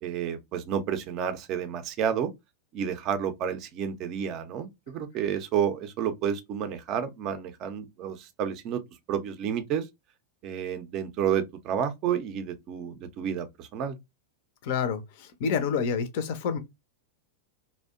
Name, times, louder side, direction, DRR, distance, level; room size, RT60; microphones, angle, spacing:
voice 1, 0.0-2.3 2.7-8.8 9.1-9.9 10.4-14.0, right 8 dB, 40° right, 0.4 m, -30 dB
voice 2, 14.6-16.6, left 6 dB, 50° left, 0.5 m, -28 dB
2.6 x 2.1 x 2.3 m
figure-of-eight pair, 90°, 0 cm